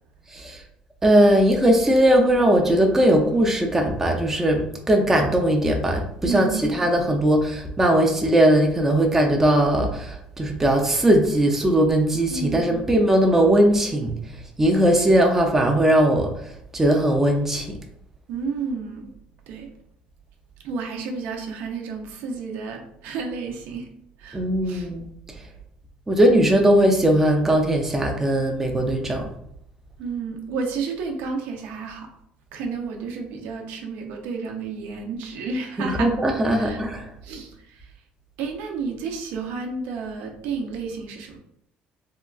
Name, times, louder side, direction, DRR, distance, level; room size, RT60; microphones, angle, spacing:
voice 1, 1.0-14.1 14.6-16.3 16.7-17.7 24.3-25.1 26.1-29.2 35.8-37.0, right 1 dB, 10° right, 1 dB, 0.4 m, -19 dB
voice 2, 6.2-6.7 12.3-12.8 18.3-19.1 19.5-19.7 20.6-23.9 24.2-24.9 30.0-32.1 32.5-36.1 36.6-36.8 37.2-37.9 38.4-41.4, right 4 dB, 80° right, 3 dB, 0.6 m, -31 dB
3.6 x 2.2 x 2.3 m, 0.75 s
cardioid pair, 150°, 3 cm